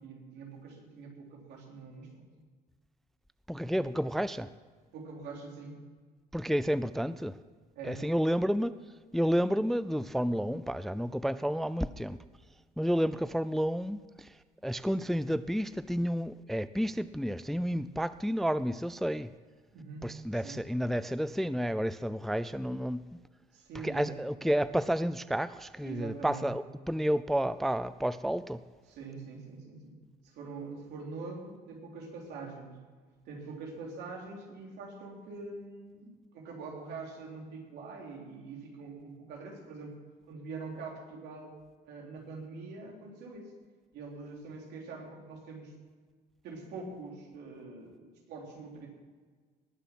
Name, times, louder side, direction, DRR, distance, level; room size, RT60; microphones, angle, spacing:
voice 1, 0.0-2.3 4.9-5.8 7.8-8.2 19.7-20.6 23.5-24.1 25.8-26.5 28.9-30.0 30.2-32.8 33.3-39.9 40.3-41.6 41.8-43.5 43.9-45.7 46.4-48.9, right 4 dB, 80° right, -1 dB, 3.6 m, -44 dB
voice 2, 3.5-4.5 6.3-7.4 7.8-8.7 9.1-12.2 12.8-14.3 14.6-19.3 20.0-23.2 23.8-28.6, equal, ahead, 15 dB, 0.3 m, -30 dB
19.5 x 6.9 x 6.0 m, 1.5 s
cardioid pair, 110°, 17 cm